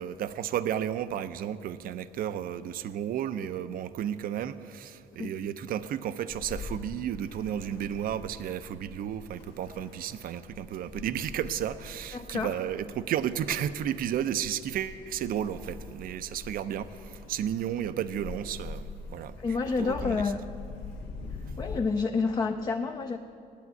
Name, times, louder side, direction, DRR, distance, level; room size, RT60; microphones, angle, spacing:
voice 1, 0.0-19.4 19.8-20.2, right 10 dB, 60° right, 13 dB, 0.5 m, -33 dB
Ocean, 6.3-21.8, left 4 dB, 85° left, 1.6 m, -44 dB
voice 2, 12.1-12.6 19.4-20.4 21.3-23.2, left 4 dB, 25° left, 6 dB, 0.5 m, -29 dB
8.5 x 8.4 x 9.2 m, 2.5 s
cardioid pair, 110°, 17 cm